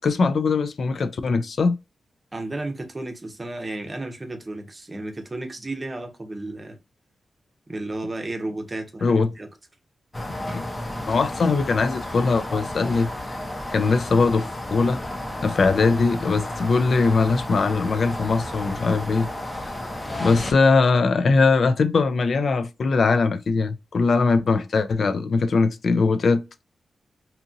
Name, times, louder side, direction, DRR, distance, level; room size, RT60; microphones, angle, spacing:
voice 1, 0.0-1.8 9.0-9.3 10.5-10.7 11.1-13.4 13.7-15.0 15.4-19.3 20.2-26.4, left 4 dB, 60° left, 0.3 m, -21 dB
voice 2, 2.3-6.8 7.7-9.5, right 2 dB, 25° right, 0.7 m, -33 dB
sound 1, 10.1-20.5, left 1 dB, 20° left, 0.6 m, -32 dB
2.8 x 2.5 x 2.5 m
wide cardioid pair, 125°, 0 cm